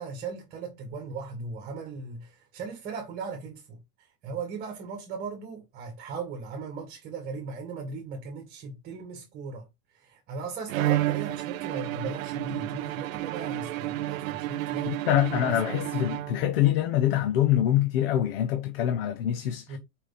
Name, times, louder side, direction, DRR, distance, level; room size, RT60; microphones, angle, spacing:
voice 1, 0.0-3.8 4.2-9.7 9.9-15.0 15.5-15.6 19.7-19.8, right 4 dB, 20° right, 2.0 m, -37 dB
Bowed string instrument, 10.7-16.7, right 15 dB, 75° right, 0.6 m, -31 dB
voice 2, 14.9-19.8, left 12 dB, 45° left, 0.9 m, -25 dB
6.6 x 4.8 x 4.2 m
supercardioid pair, 175°, 41 cm